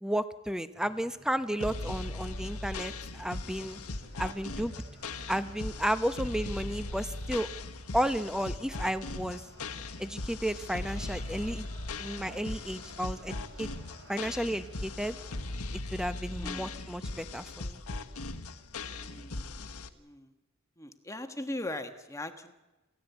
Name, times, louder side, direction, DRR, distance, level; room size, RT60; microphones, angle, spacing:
voice 1, 0.0-3.8 4.2-4.7 5.3-7.5 7.9-9.4 10.0-11.7 12.0-13.7 14.1-15.2 15.9-17.8, equal, 5° right, 11 dB, 0.9 m, -33 dB
sound 1, 0.7-15.7, right 2 dB, 55° right, 6.4 m, -55 dB
sound 2, 1.6-19.9, left 2 dB, 80° left, 1.4 m, -39 dB
voice 2, 16.3-16.8 18.9-19.6 20.0-20.3 20.8-22.5, left 1 dB, 15° left, 7 dB, 1.4 m, -40 dB
27.5 x 16.5 x 8.2 m, 1.1 s
head